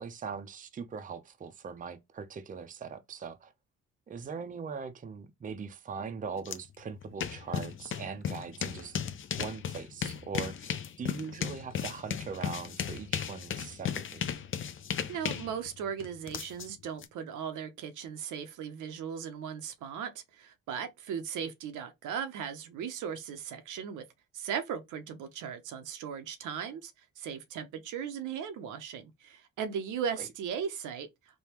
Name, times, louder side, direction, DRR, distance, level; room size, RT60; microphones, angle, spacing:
voice 1, 0.0-3.5 4.1-9.0 9.4-14.3 30.2-30.3, right 5 dB, 25° right, 0.5 m, -41 dB
sound 1, 6.5-6.6 6.9-17.1, left 8 dB, 45° left, 0.5 m, -35 dB
voice 2, 15.1-24.0 24.3-26.9 27.2-31.1, right 7 dB, 80° right, 0.7 m, -37 dB
3.4 x 2.2 x 2.9 m
cardioid pair, 90°, 30 cm